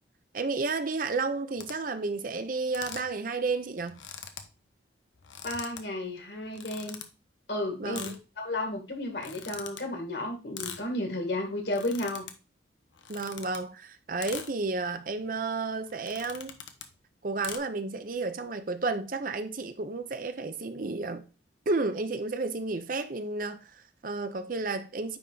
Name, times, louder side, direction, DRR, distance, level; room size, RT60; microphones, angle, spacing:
voice 1, 0.3-4.0 7.8-8.2 13.1-16.5 17.2-21.3 21.7-25.2, right 3 dB, 45° right, 0.6 m, -32 dB
sound 1, 1.5-1.7 2.7-3.1 3.5-3.6 3.8-4.5 5.1-5.8 6.5-7.0 7.9-8.2 9.1-9.8 10.5-10.8 11.6-12.3 12.9-13.6 14.2-14.5 15.2-15.4 15.9-16.9 17.4-17.6, left 8 dB, 80° left, 1.0 m, -42 dB
voice 2, 5.4-7.0 7.5-12.3, left 1 dB, 60° left, 2.0 m, -33 dB
9.7 x 3.6 x 3.9 m
head